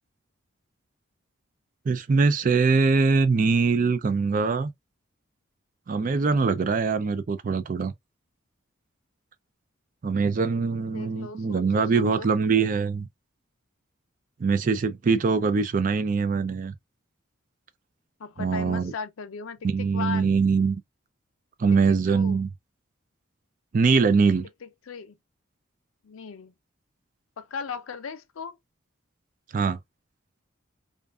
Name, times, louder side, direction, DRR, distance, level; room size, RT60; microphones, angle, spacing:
voice 1, 1.9-4.7 5.9-7.9 10.0-13.1 14.4-16.7 18.4-18.9 19.6-20.8 21.6-22.5 23.7-24.5 29.5-29.8, right 4 dB, 40° right, 0.3 m, -23 dB
voice 2, 10.4-12.3 18.2-20.4 21.9-22.5 24.6-25.2 26.0-26.5 27.4-28.6, left 5 dB, 85° left, 0.5 m, -38 dB
2.4 x 2.4 x 2.3 m
head